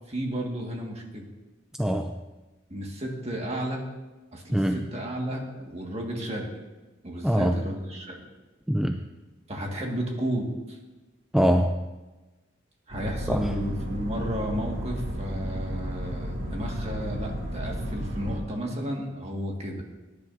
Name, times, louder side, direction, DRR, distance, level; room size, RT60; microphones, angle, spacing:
voice 1, 0.1-1.3 2.7-3.8 4.3-6.5 7.0-8.2 9.5-10.8 12.9-19.8, equal, 30° right, 0 dB, 1.8 m, -33 dB
voice 2, 1.8-2.1 4.5-4.9 7.2-7.5 8.7-9.0 11.3-11.8 13.3-13.5, equal, ahead, 5 dB, 0.3 m, -23 dB
sound 1, 12.9-18.4, equal, 55° right, 2.6 m, -33 dB
18.5 x 10.5 x 2.7 m, 1.2 s
head